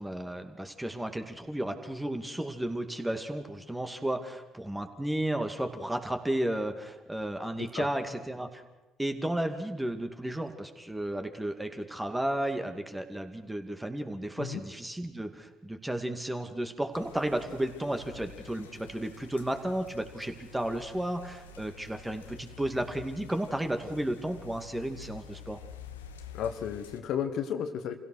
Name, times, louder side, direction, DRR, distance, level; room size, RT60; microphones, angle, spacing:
voice 1, 0.0-8.6 9.0-25.6, right 1 dB, 10° right, 6 dB, 2.3 m, -33 dB
sound 1, 16.9-27.0, left 6 dB, 90° left, 1.0 m, -49 dB
voice 2, 26.3-28.0, left 8 dB, 65° left, 8 dB, 1.4 m, -33 dB
25.5 x 16.5 x 6.5 m, 1.0 s
hypercardioid pair, 55°, 0 cm